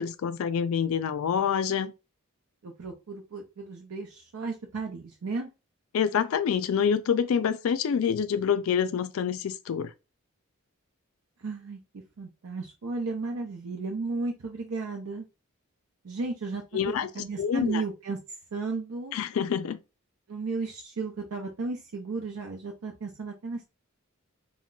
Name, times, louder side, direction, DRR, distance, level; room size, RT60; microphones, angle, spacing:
voice 1, 0.0-1.9 5.9-9.9 16.7-17.1 17.4-17.8 19.1-19.8, left 7 dB, 75° left, 0.3 m, -26 dB
voice 2, 2.6-5.5 11.4-11.8 12.2-15.3 16.0-19.1 20.3-23.6, right 3 dB, 80° right, 0.5 m, -34 dB
2.2 x 2.1 x 3.7 m
head